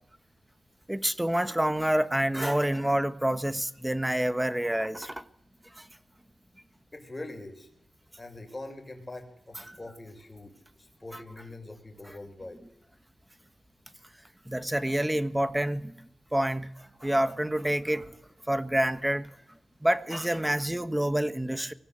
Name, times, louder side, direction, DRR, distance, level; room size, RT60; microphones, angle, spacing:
voice 1, 0.9-5.3 5.7-5.9 9.5-9.8 11.1-11.2 12.1-12.2 14.4-18.1 18.5-19.4 19.8-21.7, right 1 dB, 10° right, 1.5 m, -28 dB
voice 2, 6.9-7.7 8.2-10.5 10.8-12.6, left 2 dB, 25° left, 7.0 m, -43 dB
23.5 x 16.5 x 8.3 m
cardioid pair, 60°, 0 cm